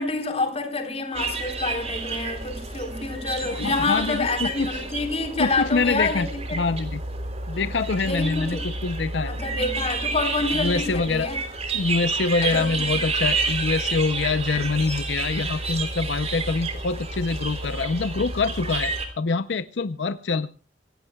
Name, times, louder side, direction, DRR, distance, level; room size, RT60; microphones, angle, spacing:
voice 1, 0.0-6.6 7.5-7.6 8.0-8.7 9.3-11.4 12.4-13.0, left 3 dB, 35° left, 3.8 m, -28 dB
sound 1, 1.1-19.1, right 3 dB, 35° right, 3.3 m, -30 dB
voice 2, 3.5-4.7 5.4-7.0 7.5-9.3 10.6-11.3 11.7-20.5, left 4 dB, 80° left, 0.6 m, -25 dB
26.5 x 16.5 x 2.3 m
head